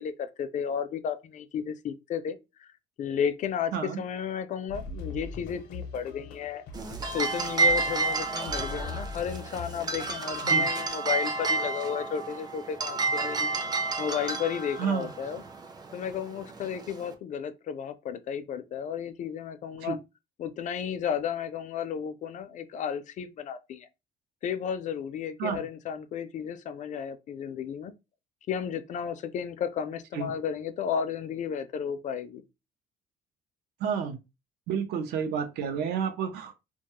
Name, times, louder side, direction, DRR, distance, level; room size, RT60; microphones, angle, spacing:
voice 1, 0.0-2.7 3.0-6.6 7.1-13.5 14.0-15.4 15.9-20.0 20.4-23.9 24.4-27.9 28.5-32.4, left 8 dB, 45° left, 0.4 m, -33 dB
sound 1, 4.7-10.8, left 3 dB, 80° left, 0.7 m, -41 dB
sound 2, 6.7-17.1, right 3 dB, 25° right, 0.4 m, -30 dB
voice 2, 33.8-34.2 34.7-36.6, right 7 dB, 80° right, 0.5 m, -30 dB
2.2 x 2.2 x 2.9 m
cardioid pair, 110°, 17 cm